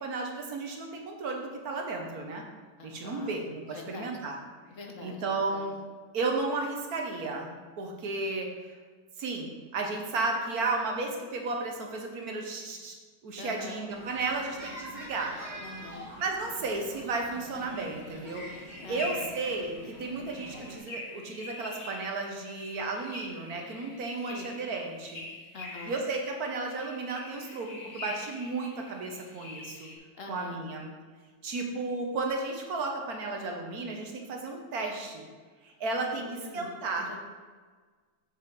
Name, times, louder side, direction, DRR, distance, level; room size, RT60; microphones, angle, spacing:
voice 1, 0.0-2.4 2.8-4.4 5.0-5.8 6.1-8.8 9.2-12.9 13.2-15.3 16.2-25.2 25.8-29.9 30.3-30.9 31.4-35.2 35.6-37.2, right 3 dB, 70° right, 2 dB, 1.6 m, -33 dB
voice 2, 2.8-3.4 3.7-4.1 4.7-5.7 13.4-13.8 15.6-16.1 18.8-19.3 24.3-24.5 25.5-26.0 30.1-30.6 34.8-35.0 36.0-36.8 37.1-37.2, left 3 dB, 55° left, 2 dB, 1.3 m, -44 dB
sound 1, 13.9-20.8, right 1 dB, 30° right, 1.8 m, -45 dB
sound 2, 17.6-29.9, left 2 dB, 85° left, 2.0 m, -45 dB
7.8 x 6.7 x 3.9 m, 1.5 s
omnidirectional pair, 1.7 m